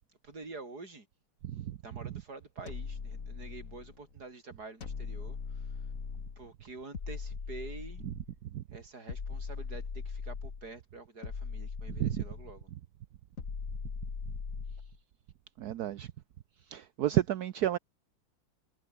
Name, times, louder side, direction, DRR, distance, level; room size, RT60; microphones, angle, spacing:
voice 1, 0.2-1.1 1.8-5.7 6.4-8.0 8.7-12.7, right 3 dB, 45° right, 5.4 m, -47 dB
sound 1, 2.7-4.0 4.8-6.4 6.9-8.4 9.1-10.7 11.2-12.6 13.4-15.0, left 5 dB, 40° left, 2.2 m, -40 dB
voice 2, 15.6-16.1 16.7-17.8, right 12 dB, 65° right, 1.0 m, -30 dB
omnidirectional pair, 2.4 m